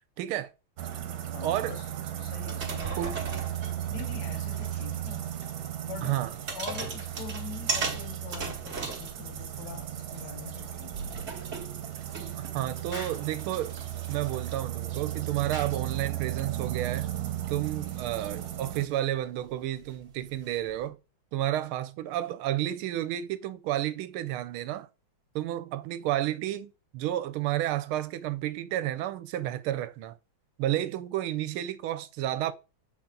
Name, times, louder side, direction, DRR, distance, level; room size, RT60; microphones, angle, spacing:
voice 1, 0.2-0.5 1.4-1.8 3.0-3.2 6.0-6.3 12.5-13.7 14.1-17.1 17.5-21.0 21.3-24.9 25.3-30.2 30.6-32.5, right 13 dB, 85° right, 1.5 m, -31 dB
sound 1, 0.8-18.8, right 12 dB, 70° right, 1.6 m, -36 dB
voice 2, 1.3-1.9 2.2-3.4 3.9-5.3 5.9-6.2 6.5-11.2 17.8-17.9, left 9 dB, 70° left, 1.1 m, -44 dB
sound 2, 2.3-5.1 5.4-5.5 6.2-9.7 10.1-20.9, right 4 dB, 40° right, 1.2 m, -39 dB
Explosion, 12.9-13.3 15.5-15.8, left 1 dB, 20° left, 1.0 m, -41 dB
7.3 x 4.2 x 3.8 m
omnidirectional pair, 2.3 m